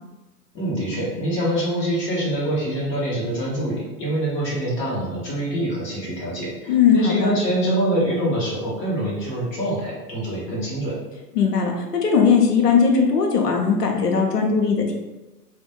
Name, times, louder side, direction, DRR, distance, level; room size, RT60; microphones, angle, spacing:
voice 1, 0.5-11.0, right 1 dB, 25° left, -6 dB, 1.4 m, -25 dB
voice 2, 6.7-7.3 11.3-14.9, left 6 dB, 75° left, 1 dB, 0.9 m, -19 dB
3.8 x 2.6 x 3.7 m, 1.1 s
figure-of-eight pair, 105°, 48 cm